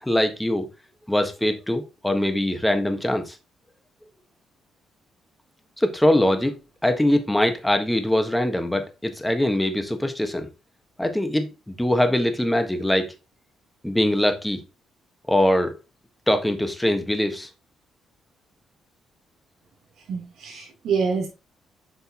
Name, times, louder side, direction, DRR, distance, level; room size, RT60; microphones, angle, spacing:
voice 1, 0.0-0.7 1.1-3.4 5.8-6.5 6.8-10.5 11.0-13.1 13.8-14.6 15.3-15.7 16.3-17.5, left 1 dB, 5° left, 1.4 m, -22 dB
voice 2, 20.1-21.3, right 5 dB, 75° right, 2.9 m, -26 dB
7.8 x 5.5 x 2.9 m
cardioid pair, 90°, 0 cm